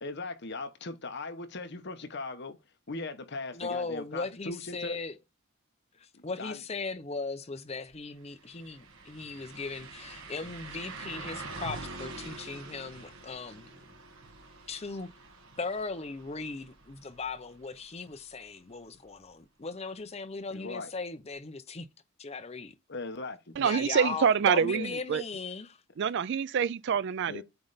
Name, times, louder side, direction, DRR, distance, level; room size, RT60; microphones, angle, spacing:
voice 1, 0.0-2.6 2.9-5.0 6.1-6.6 20.5-20.9 22.9-23.5 24.6-24.9 27.3-27.4, left 3 dB, 50° left, 1.0 m, -39 dB
voice 2, 3.5-5.2 6.0-13.8 14.7-15.1 15.6-21.9 22.2-22.7 23.6-25.8, left 4 dB, 30° left, 0.7 m, -38 dB
sound 1, 7.9-8.0 8.3-18.1 18.5-18.6 21.3-21.4, right 3 dB, 70° right, 1.4 m, -45 dB
voice 3, 23.6-25.2 26.0-27.4, right 7 dB, 50° right, 0.3 m, -26 dB
7.9 x 3.3 x 4.0 m
head